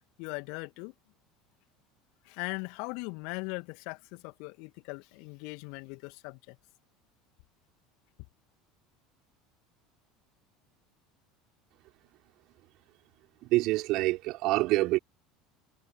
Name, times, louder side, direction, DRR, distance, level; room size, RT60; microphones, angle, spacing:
voice 1, 0.2-0.9 2.3-6.6, left 33 dB, 55° left, 2.3 m, -39 dB
voice 2, 13.4-15.0, right 19 dB, 50° right, 5.0 m, -26 dB
figure-of-eight pair, 70°, 0 cm